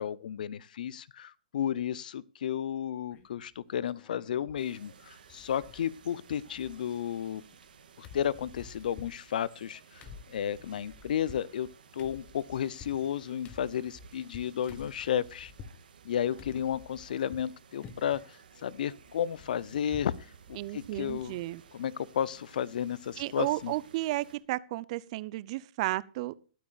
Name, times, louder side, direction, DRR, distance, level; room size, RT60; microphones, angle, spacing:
voice 1, 0.0-7.4 8.0-11.7 11.9-15.5 16.0-20.1 20.5-21.4 21.7-23.7, left 9 dB, 65° left, 0.6 m, -33 dB
sound 1, 3.1-3.5 3.8-4.6 4.9-5.0 5.3-6.1 6.4-7.7 8.0-15.8 16.4-17.5 17.8-18.3 18.6-20.2 20.6-20.7 21.0-21.2, left 5 dB, 25° left, 1.4 m, -51 dB
sound 2, 4.6-24.4, right 6 dB, 75° right, 2.1 m, -56 dB
voice 2, 20.6-21.6 23.2-26.3, right 17 dB, 45° right, 0.6 m, -33 dB
21.0 x 8.8 x 2.4 m
hypercardioid pair, 130°, 5 cm